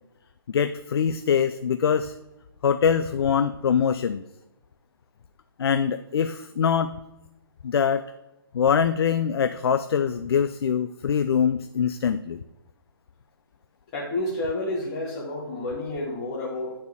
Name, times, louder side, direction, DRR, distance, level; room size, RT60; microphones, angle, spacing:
voice 1, 0.5-2.1 2.6-4.2 5.6-6.9 7.6-8.0 8.5-12.4, left 7 dB, 75° left, 10 dB, 0.4 m, -23 dB
voice 2, 13.9-16.7, left 2 dB, 25° left, -5 dB, 1.2 m, -30 dB
9.5 x 4.3 x 3.5 m, 0.97 s
hypercardioid pair, 160°, 13 cm